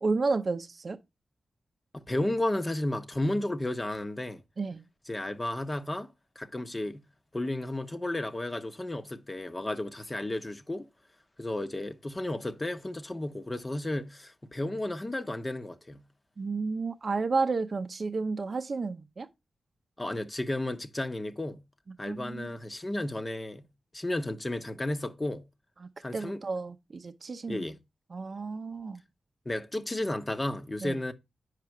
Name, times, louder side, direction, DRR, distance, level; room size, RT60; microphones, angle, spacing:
voice 1, 0.0-1.0 4.6-4.9 16.4-19.3 22.0-22.6 25.8-27.6 28.1-29.0 30.8-31.0, right 4 dB, 55° right, 0.6 m, -32 dB
voice 2, 1.9-4.4 5.1-6.1 6.4-7.0 7.3-10.9 11.4-16.0 20.0-21.6 22.0-23.6 23.9-25.4 26.0-26.4 27.5-27.8 29.4-31.1, left 1 dB, 30° left, 1.1 m, -33 dB
6.6 x 5.0 x 4.6 m
supercardioid pair, 40°, 0 cm